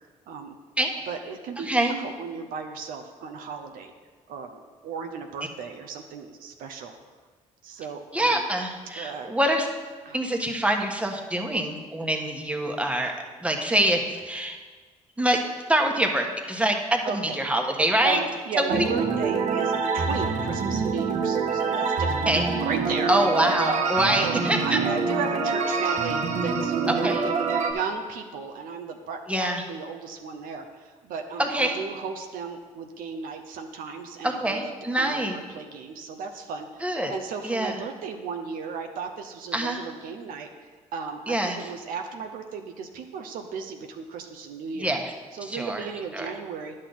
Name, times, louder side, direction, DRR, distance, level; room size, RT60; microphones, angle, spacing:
voice 1, 1.1-1.7 2.0-3.9 4.3-6.9 7.6-8.4 9.0-9.3 10.1-10.2 13.0-13.2 17.0-17.4 18.0-22.3 22.6-23.1 23.5-23.8 24.2-24.3 24.6-36.8 37.1-44.9 45.3-46.7, right 5 dB, 75° right, 5 dB, 0.7 m, -35 dB
voice 2, 1.6-2.0 8.1-9.7 10.1-13.1 13.4-14.0 14.3-14.6 15.2-15.4 15.7-18.2 18.6-18.8 22.3-22.5 23.1-24.8 26.9-27.2 29.3-29.6 31.4-31.8 34.2-35.4 36.8-37.1 37.4-37.8 39.5-39.8 41.3-41.7 44.8-45.1 45.4-45.8 46.1-46.3, right 1 dB, 10° right, 2 dB, 1.3 m, -25 dB
sound 1, 18.7-27.7, right 4 dB, 55° right, 1.0 m, -26 dB
9.9 x 6.4 x 4.0 m, 1.4 s
supercardioid pair, 60°, 15 cm